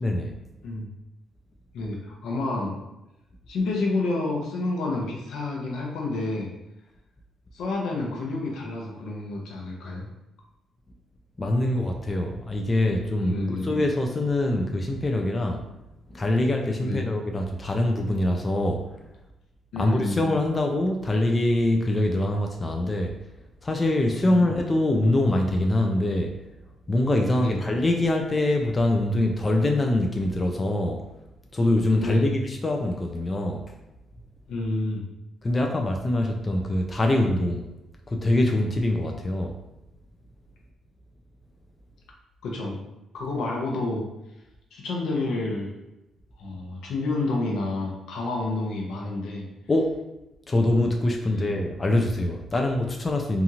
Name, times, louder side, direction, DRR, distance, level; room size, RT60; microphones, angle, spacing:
voice 1, 0.0-0.3 11.4-15.6 16.1-18.8 19.8-23.1 23.6-26.3 26.9-31.0 31.5-33.6 35.4-37.6 38.1-39.5 49.7-50.0 50.5-53.4, left 1 dB, 25° left, 2 dB, 0.3 m, -24 dB
voice 2, 1.7-2.8 3.5-6.5 7.5-10.1 13.2-13.7 16.8-17.1 19.7-20.2 24.2-24.5 27.4-27.6 32.0-32.3 34.5-35.1 42.4-42.8 43.1-44.1 44.7-45.8 46.4-49.5 51.2-51.5, left 2 dB, 80° left, -1 dB, 0.7 m, -29 dB
2.8 x 2.4 x 2.7 m, 0.92 s
cardioid pair, 90°, 0 cm